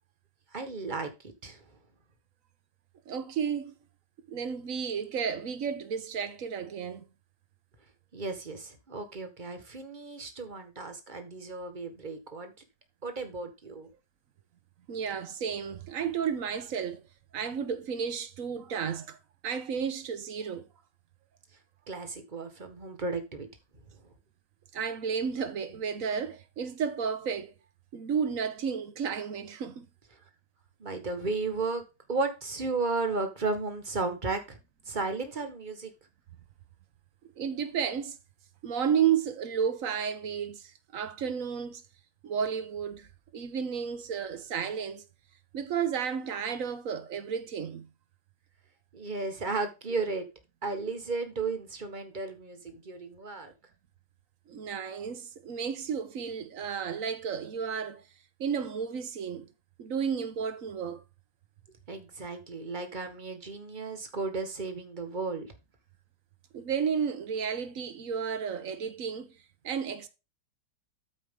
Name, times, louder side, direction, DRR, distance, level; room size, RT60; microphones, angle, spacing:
voice 1, 0.5-1.1 1.4-1.6 8.1-12.5 13.0-13.9 21.9-23.5 30.8-31.8 32.1-34.6 34.9-35.9 48.9-50.3 50.6-53.5 61.9-65.5, right 3 dB, 30° right, 1.5 m, -34 dB
voice 2, 3.1-3.7 4.3-7.1 14.9-17.0 17.3-19.2 19.4-20.7 24.7-27.5 27.9-29.9 37.4-38.2 38.6-41.8 42.2-43.1 43.3-45.0 45.5-47.9 54.5-58.0 58.4-59.5 59.8-61.0 66.5-69.3 69.6-70.1, right 7 dB, 55° right, 1.2 m, -32 dB
13.0 x 4.8 x 3.7 m
omnidirectional pair, 1.9 m